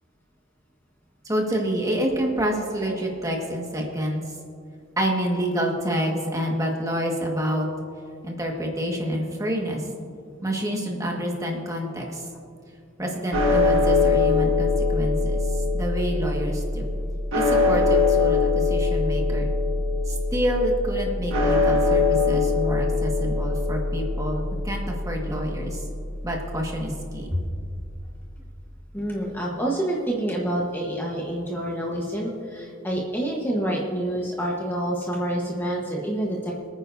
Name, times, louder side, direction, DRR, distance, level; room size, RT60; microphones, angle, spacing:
voice 1, 1.2-4.2 5.0-7.7 8.2-9.8 10.4-12.3 13.0-16.9 17.3-19.5 20.1-25.8 26.2-27.4, equal, 15° right, 0 dB, 1.6 m, -28 dB
sound 1, 13.3-27.6, left 3 dB, 70° right, 1.8 m, -23 dB
voice 2, 28.9-36.7, right 1 dB, 10° left, -2 dB, 1.1 m, -27 dB
26.5 x 9.5 x 2.7 m, 2.4 s
head